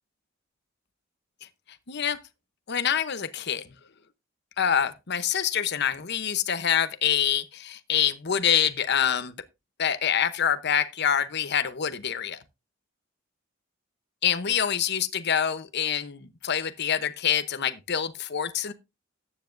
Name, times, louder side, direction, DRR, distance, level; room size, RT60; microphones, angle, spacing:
voice 1, 1.9-2.2 2.7-3.6 4.6-9.3 9.8-12.4 14.2-18.7, left 8 dB, 60° left, 0.9 m, -26 dB
14.5 x 10.0 x 2.6 m
head